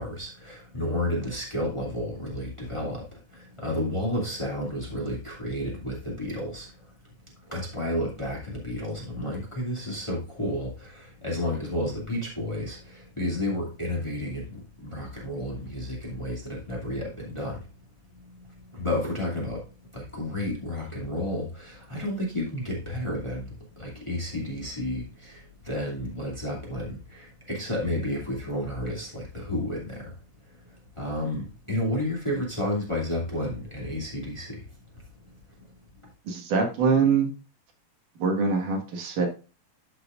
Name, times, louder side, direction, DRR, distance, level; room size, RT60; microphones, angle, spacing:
voice 1, 0.0-6.7 7.5-17.6 18.7-19.6 19.9-30.1 31.0-34.6, left 1 dB, 10° left, 2.1 m, -31 dB
voice 2, 36.3-37.3 38.2-39.3, right 5 dB, 85° right, 3.3 m, -24 dB
12.0 x 5.8 x 2.5 m
omnidirectional pair, 3.5 m